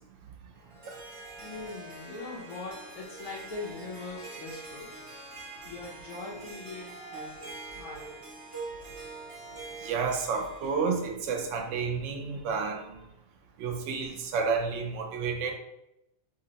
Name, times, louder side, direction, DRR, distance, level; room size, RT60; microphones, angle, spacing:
Harp, 0.5-11.1, right 3 dB, 35° right, 0.6 m, -44 dB
voice 1, 1.4-5.0 5.6-8.3, left 3 dB, 45° left, -6 dB, 0.5 m, -41 dB
voice 2, 6.9-7.3 9.8-13.0 13.6-15.5, right 5 dB, 75° right, 3 dB, 0.9 m, -31 dB
2.8 x 2.0 x 3.9 m, 0.86 s
omnidirectional pair, 1.3 m